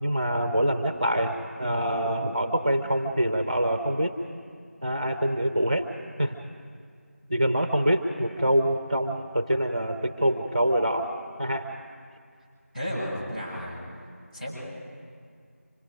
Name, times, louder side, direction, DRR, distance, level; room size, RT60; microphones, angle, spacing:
voice 1, 0.0-4.1 4.8-5.8 6.2-6.3 7.3-11.1 11.4-11.6, right 1 dB, 25° right, 6 dB, 0.6 m, -25 dB
voice 2, 12.7-13.8 14.3-14.6, equal, 30° left, -6 dB, 7.2 m, -33 dB
25.5 x 20.0 x 5.1 m, 2.2 s
figure-of-eight pair, 175°, 8 cm